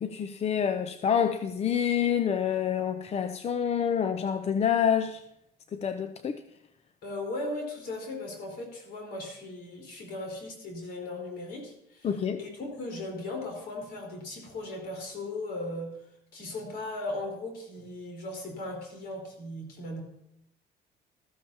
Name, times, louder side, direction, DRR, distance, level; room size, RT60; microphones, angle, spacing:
voice 1, 0.0-5.2 5.7-6.4 12.0-12.4, left 8 dB, 40° left, 10 dB, 0.5 m, -27 dB
voice 2, 7.0-12.1 12.4-15.9 16.3-20.0, left 2 dB, 65° left, 1 dB, 4.4 m, -37 dB
14.5 x 14.0 x 2.9 m, 0.78 s
cardioid pair, 110°, 17 cm